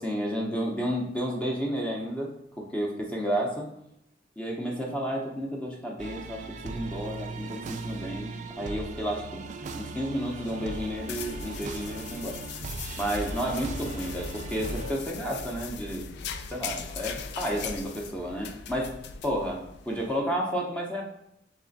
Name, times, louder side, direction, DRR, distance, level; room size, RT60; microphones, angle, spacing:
voice 1, 0.0-3.7 4.4-9.4 9.7-12.4 13.0-16.1 16.5-21.0, equal, 5° left, -2 dB, 0.6 m, -31 dB
sound 1, 6.0-14.9, right 4 dB, 40° right, 0.3 m, -39 dB
sound 2, 10.1-20.1, left 5 dB, 65° left, 0.4 m, -39 dB
3.3 x 3.2 x 3.9 m, 0.79 s
head